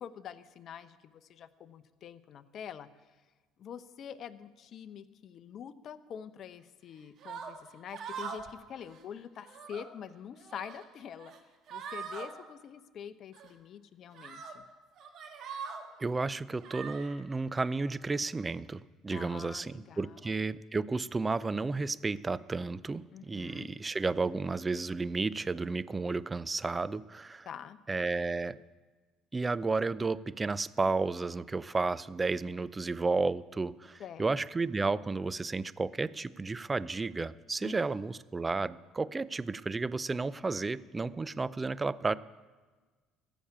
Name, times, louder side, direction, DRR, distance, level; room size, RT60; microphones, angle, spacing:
voice 1, 0.0-2.9 3.6-11.3 11.7-14.6 19.1-20.2 23.1-23.7 27.4-27.8 34.0-34.3 37.6-37.8, left 8 dB, 55° left, 14 dB, 0.8 m, -45 dB
sound 1, 7.2-7.5 7.9-8.5 8.8-9.0 9.4-9.9 10.4-10.9 11.2-11.4 11.7-12.3 13.3-13.5 14.1-14.5 15.0-15.8 16.6-17.1, right 6 dB, 55° right, 2.0 m, -42 dB
voice 2, 16.0-27.5 27.9-28.6 29.3-42.2, right 3 dB, 25° right, 18 dB, 0.5 m, -32 dB
14.5 x 7.1 x 8.7 m, 1.3 s
hypercardioid pair, 65°, 0 cm